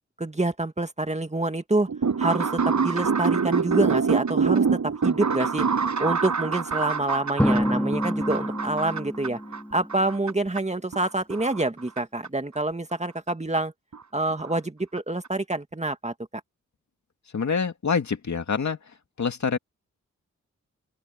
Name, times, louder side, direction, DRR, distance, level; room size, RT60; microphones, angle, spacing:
voice 1, 0.2-1.9 2.2-9.4 9.7-13.7 14.1-16.1, right 2 dB, 20° right, 2.1 m, -27 dB
sound 1, 1.9-9.6 9.9-10.6 10.9-12.0 12.2-12.3 13.3-13.4 13.6-13.7 13.9-14.0 14.3-14.6 15.0-15.1 15.2-15.3, right 5 dB, 70° right, 8.0 m, -26 dB
Drum, 7.4-10.0, equal, 5° left, 5.3 m, -27 dB
voice 2, 17.3-18.8 19.2-19.6, left 5 dB, 65° left, 2.4 m, -26 dB
open air
cardioid pair, 55°, 30 cm